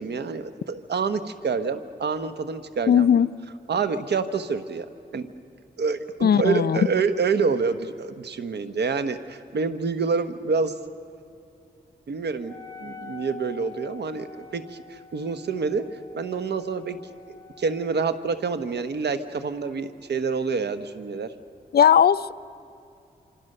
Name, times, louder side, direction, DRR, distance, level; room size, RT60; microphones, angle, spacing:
voice 1, 0.0-3.1 3.7-4.9 5.1-5.3 5.8-10.7 12.1-12.5 12.8-15.8 16.1-17.0 17.3-21.3, right 5 dB, 80° right, 10 dB, 1.1 m, -27 dB
voice 2, 2.9-3.3 6.2-6.9 21.7-22.3, left 8 dB, 65° left, 16 dB, 0.5 m, -18 dB
Wind instrument woodwind instrument, 12.4-18.2, left 6 dB, 25° left, 0.9 m, -46 dB
26.5 x 25.5 x 6.7 m, 2.6 s
wide cardioid pair, 95°, 17 cm